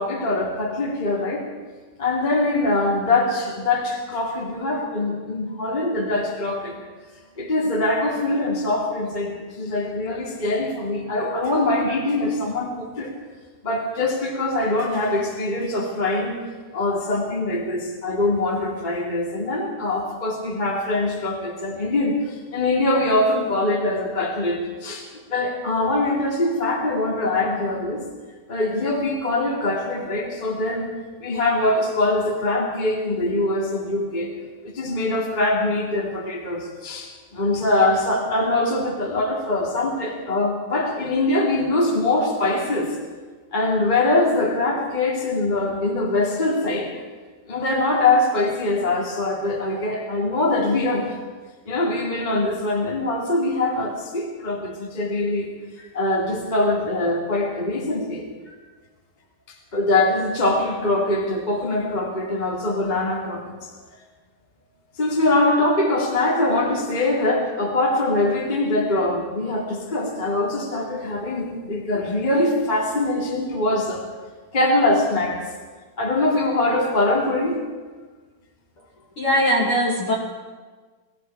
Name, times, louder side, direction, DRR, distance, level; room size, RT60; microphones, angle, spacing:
voice 1, 0.0-1.4 2.0-6.7 7.4-13.1 13.6-16.4 16.7-28.0 28.5-30.9 31.2-34.3 34.6-43.0 43.5-46.9 47.4-51.2 51.6-55.5 55.8-58.2 59.7-63.7 65.0-74.0 74.5-75.4 76.0-77.6, left 2 dB, 20° left, -2 dB, 1.2 m, -23 dB
voice 2, 79.2-80.1, equal, 45° left, -2 dB, 2.0 m, -20 dB
19.0 x 15.0 x 4.5 m, 1.4 s
omnidirectional pair, 4.7 m